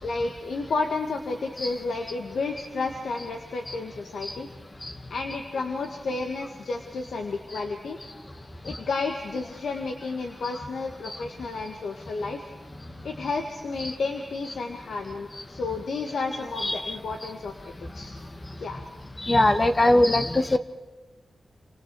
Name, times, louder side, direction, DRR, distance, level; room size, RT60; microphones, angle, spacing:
voice 1, 0.0-4.5 5.1-8.0 8.6-12.4 13.0-17.5 17.9-18.1 18.6-18.8, left 3 dB, 85° left, 4 dB, 2.0 m, -31 dB
voice 2, 16.6-17.0 19.3-20.6, left 1 dB, 25° left, 9 dB, 1.4 m, -20 dB
29.0 x 26.0 x 4.6 m, 1.2 s
wide cardioid pair, 105°, 0 cm